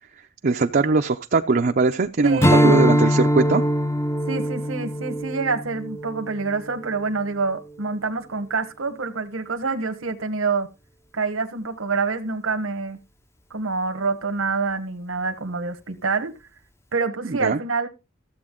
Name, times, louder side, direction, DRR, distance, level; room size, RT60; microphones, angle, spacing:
voice 1, 0.4-3.6 17.2-17.6, right 3 dB, 45° right, 0.5 m, -20 dB
voice 2, 2.2-2.7 4.3-10.7 11.1-13.0 13.5-16.3 16.9-17.9, right 4 dB, 80° right, 1.1 m, -26 dB
Strum, 2.4-7.1, equal, 15° left, 0.6 m, -22 dB
14.0 x 7.9 x 3.8 m
head